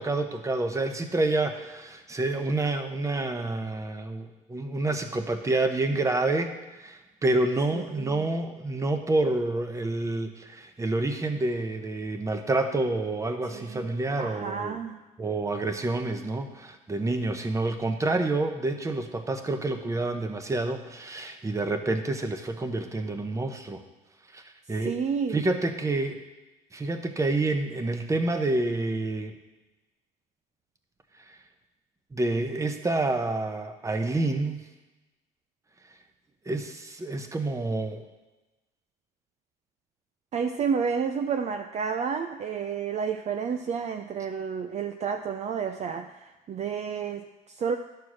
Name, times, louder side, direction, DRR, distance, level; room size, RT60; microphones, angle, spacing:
voice 1, 0.0-14.8 15.2-23.8 24.3-24.4 24.7-25.0 25.3-26.2 26.7-29.3 32.1-34.6 36.5-38.0, right 2 dB, 20° right, 6 dB, 1.0 m, -28 dB
voice 2, 7.7-8.3 13.5-13.9 14.2-15.0 24.8-25.4 40.3-47.8, right 6 dB, 45° right, 7 dB, 0.5 m, -30 dB
11.5 x 4.6 x 6.2 m, 1.1 s
cardioid pair, 110°, 17 cm